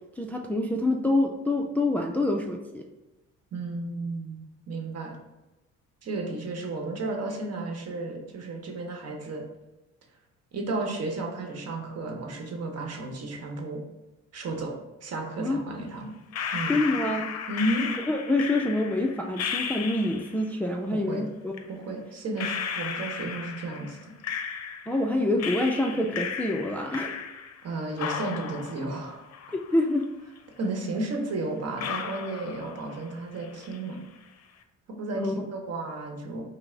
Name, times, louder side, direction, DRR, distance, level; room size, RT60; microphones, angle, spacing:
voice 1, 0.2-2.8 15.4-15.6 16.7-17.3 18.1-21.6 24.9-27.2 29.7-30.1 35.1-35.3, left 2 dB, 5° left, 2 dB, 0.3 m, -26 dB
voice 2, 3.5-4.4 4.7-5.1 6.0-9.4 10.5-13.8 14.3-14.7 15.0-16.1 16.5-16.8 17.5-17.9 20.9-21.3 21.7-24.0 27.6-29.3 30.6-34.0 35.0-36.4, right 2 dB, 55° right, 2 dB, 1.0 m, -33 dB
sound 1, 16.3-20.5 21.5-21.6 22.4-25.1 25.4-27.7 28.0-30.0 30.4-30.5 31.1-31.2 31.8-33.1 33.4-33.9, left 6 dB, 55° left, 0.5 m, -35 dB
5.4 x 2.1 x 3.7 m, 1.0 s
cardioid pair, 90°, 30 cm